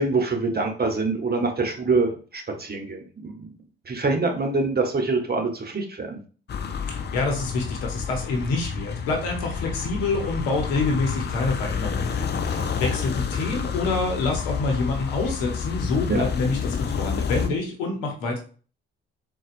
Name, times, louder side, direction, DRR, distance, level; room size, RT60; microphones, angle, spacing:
voice 1, 0.0-3.5 3.9-6.2 16.1-16.2, right 3 dB, 30° right, 3 dB, 1.0 m, -25 dB
sound 1, 6.5-17.5, left 6 dB, 35° left, 0.5 m, -29 dB
voice 2, 6.9-18.4, left 3 dB, 85° left, 2 dB, 0.9 m, -27 dB
4.0 x 2.4 x 2.5 m, 0.40 s
hypercardioid pair, 45°, 30 cm